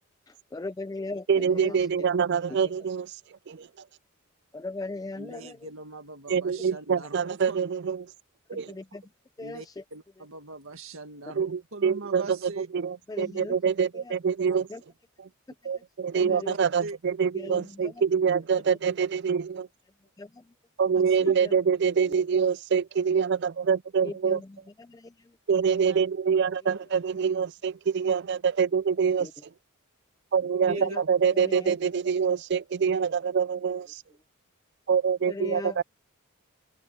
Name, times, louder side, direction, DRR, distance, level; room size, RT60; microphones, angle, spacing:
voice 1, 0.3-1.7 4.5-5.6 8.5-9.0 9.4-9.7 13.1-13.5 14.1-14.2 14.7-14.8 16.1-16.6 17.3-17.9 20.2-20.3 21.2-21.6 22.1-22.2 24.0-24.5 24.8-25.1 29.2-29.3 30.7-31.0 31.4-31.8 35.3-35.8, left 2 dB, 15° left, 0.3 m, -38 dB
voice 2, 1.3-3.1 3.5-3.7 6.3-8.1 8.5-8.7 11.4-14.7 15.2-15.3 15.7-19.7 20.8-24.4 25.5-29.3 30.3-34.0 34.9-35.8, right 6 dB, 50° right, 0.4 m, -25 dB
voice 3, 5.2-7.6 9.4-12.7 13.8-13.9 14.4-14.7 16.2-16.4 16.8-17.0 21.1-21.4 25.9-26.1 26.7-26.8 30.7-31.0, right 3 dB, 70° right, 2.0 m, -41 dB
open air
head